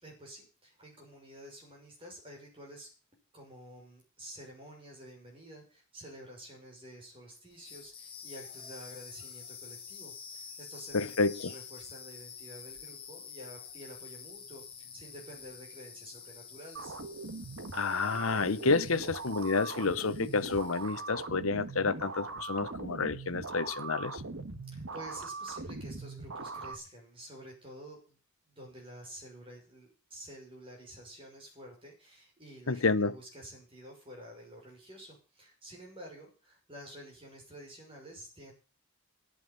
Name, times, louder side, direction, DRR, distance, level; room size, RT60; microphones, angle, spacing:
voice 1, 0.0-2.9 3.3-16.9 24.7-28.2 28.5-38.5, right 1 dB, 25° right, 6.2 m, -50 dB
sound 1, 7.5-21.1, left 7 dB, 25° left, 1.9 m, -48 dB
voice 2, 10.9-11.5 17.7-24.2 32.7-33.1, left 4 dB, 70° left, 0.9 m, -29 dB
sound 2, 16.8-26.8, right 3 dB, 60° right, 1.5 m, -41 dB
11.0 x 8.6 x 9.5 m
head